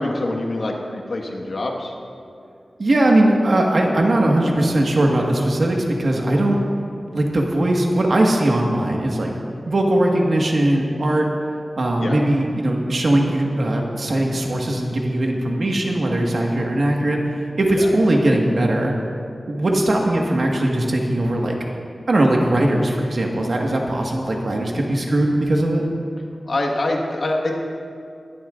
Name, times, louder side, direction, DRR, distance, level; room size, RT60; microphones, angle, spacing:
voice 1, 0.0-1.9 3.8-4.0 12.0-12.2 17.7-17.9 26.4-27.6, left 2 dB, 70° left, 0 dB, 1.6 m, -25 dB
voice 2, 2.8-6.6 7.1-9.3 9.6-11.3 11.8-18.9 19.5-21.6 22.1-25.8, right 1 dB, 65° right, 0 dB, 1.6 m, -19 dB
21.0 x 11.5 x 2.5 m, 2.4 s
wide cardioid pair, 85°, 0 cm